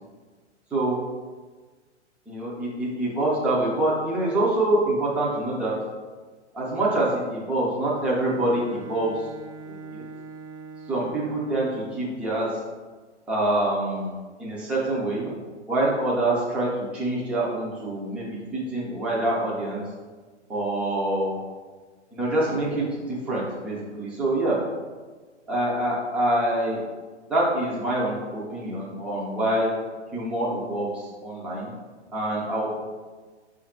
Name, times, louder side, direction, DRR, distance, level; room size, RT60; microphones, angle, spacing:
voice 1, 2.3-5.8 6.5-9.3 9.7-10.0 10.9-12.5 13.3-15.3 15.7-19.8 20.5-21.3 22.1-24.6 25.5-26.8 27.3-29.7 30.1-31.7 32.1-32.8, right 1 dB, 5° right, -5 dB, 0.4 m, -26 dB
Bowed string instrument, 8.0-12.1, right 4 dB, 85° right, 0.5 m, -43 dB
4.9 x 2.5 x 4.2 m, 1.4 s
hypercardioid pair, 130°, 35 cm